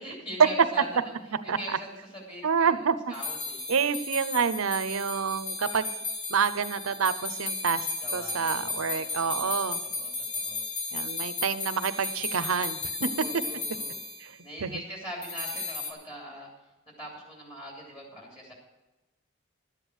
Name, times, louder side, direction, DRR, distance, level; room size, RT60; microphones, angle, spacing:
voice 1, 0.0-3.6 8.0-9.0 9.4-10.6 13.1-14.0 14.4-16.5 17.0-18.5, equal, 25° left, -2 dB, 2.9 m, -42 dB
voice 2, 2.4-3.0 3.7-5.9 6.3-7.9 8.1-9.8 10.9-13.1 14.6-14.7, right 6 dB, 70° right, 13 dB, 0.6 m, -28 dB
sound 1, 3.1-14.2 15.2-15.9, left 3 dB, 50° left, 2.6 m, -34 dB
12.0 x 8.3 x 6.3 m, 1.1 s
head